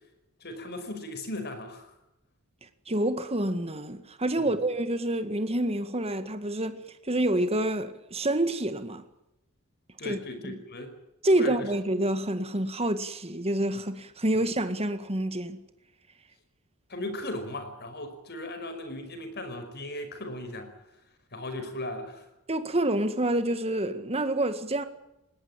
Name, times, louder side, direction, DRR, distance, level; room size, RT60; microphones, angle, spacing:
voice 1, 0.4-1.9 4.4-4.6 10.0-10.9 11.4-11.7 16.9-20.8 21.3-22.3, left 1 dB, 45° left, 5.3 m, -37 dB
voice 2, 2.9-9.0 10.0-10.2 10.4-10.5 11.2-15.6 22.5-24.8, right 1 dB, 25° right, 1.8 m, -28 dB
20.5 x 19.0 x 8.9 m
head